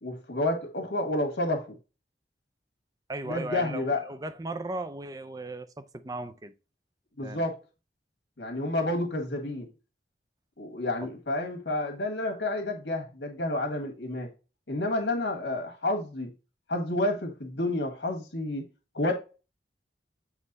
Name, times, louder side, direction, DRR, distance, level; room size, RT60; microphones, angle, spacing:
voice 1, 0.0-1.6 3.2-4.0 7.2-7.6 8.4-9.7 10.6-14.3 14.7-16.3 16.7-18.6 18.9-19.1, left 1 dB, 90° left, 1.5 m, -30 dB
voice 2, 3.1-6.5 7.2-7.5 11.0-11.1, right 2 dB, 20° right, 0.4 m, -37 dB
7.4 x 3.3 x 4.0 m
head